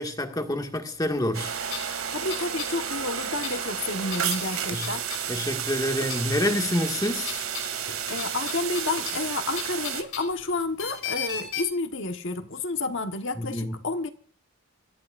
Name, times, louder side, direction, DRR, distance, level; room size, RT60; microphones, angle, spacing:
voice 1, 0.0-1.5 4.7-4.9 5.3-7.4 13.4-13.8, left 1 dB, 15° left, 1.9 m, -27 dB
sound 1, 1.3-1.4 1.6-5.7 6.0-6.6 6.9-11.6, left 6 dB, 85° left, 5.1 m, -36 dB
sound 2, 1.3-10.0, right 8 dB, 85° right, 2.2 m, -32 dB
voice 2, 2.1-5.0 8.1-14.1, left 3 dB, 60° left, 1.4 m, -30 dB
26.5 x 14.5 x 2.6 m
head